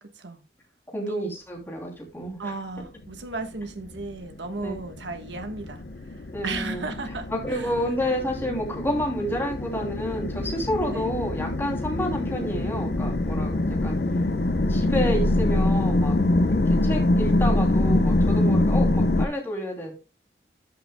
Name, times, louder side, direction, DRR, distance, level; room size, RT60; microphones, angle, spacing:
voice 1, 0.0-0.4 1.1-1.3 2.4-7.7 10.9-11.1, right 3 dB, 85° right, 1.4 m, -35 dB
voice 2, 0.9-2.5 4.6-4.8 6.3-6.9 7.3-14.0 14.7-16.2 16.7-19.9, equal, 15° left, 2.9 m, -29 dB
sound 1, 3.8-19.2, left 1 dB, 60° left, 0.8 m, -24 dB
13.5 x 6.8 x 2.2 m
head